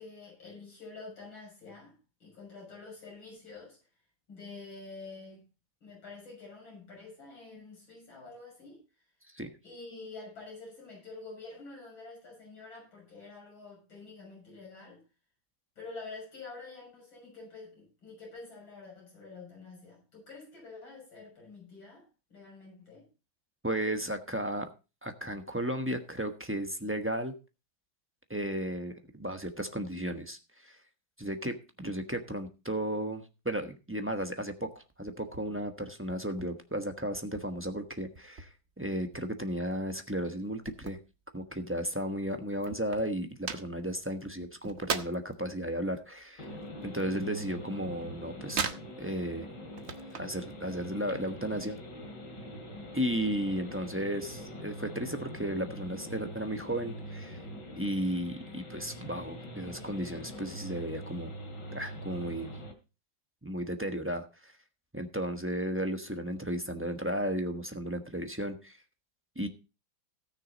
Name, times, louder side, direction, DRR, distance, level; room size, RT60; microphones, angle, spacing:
voice 1, 0.0-3.8 4.3-5.4 5.8-8.8 9.6-15.0 15.8-23.1, left 3 dB, 75° left, 7.4 m, -47 dB
voice 2, 23.6-24.7 25.0-27.3 28.3-30.8 31.2-41.0 41.3-46.5 46.8-48.7 49.0-49.5 50.1-51.8 52.9-57.4 57.8-61.3 61.7-62.5 63.4-64.5 64.9-68.8 69.3-69.5, equal, 10° right, 0.8 m, -34 dB
sound 1, 34.7-35.5 35.8-37.5 37.8-38.8 39.1-41.7 42.0-42.1 42.3-45.4 45.8-47.7 47.9-49.3 49.6-50.4 50.8-51.6, right 5 dB, 40° right, 1.1 m, -39 dB
sound 2, 46.4-62.7, equal, 60° left, 3.1 m, -44 dB
17.5 x 6.5 x 4.1 m
omnidirectional pair, 2.1 m